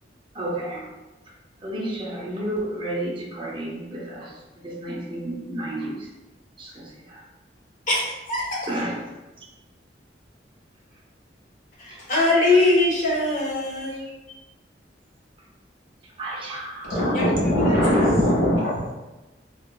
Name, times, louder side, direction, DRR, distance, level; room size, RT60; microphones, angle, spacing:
voice 1, 0.3-0.9 1.6-4.3 4.6-6.1 6.6-7.2 8.7-9.0 11.9-12.0 16.2-17.1, right 1 dB, 30° right, -4 dB, 0.6 m, -31 dB
voice 2, 7.9-8.7 11.8-14.0 17.1-17.2 17.6-17.8, left 2 dB, 45° left, -5 dB, 0.9 m, -22 dB
voice 3, 16.9-18.6 18.9-19.0, equal, 70° left, -12 dB, 1.4 m, -20 dB
3.7 x 2.3 x 2.2 m, 1.1 s
head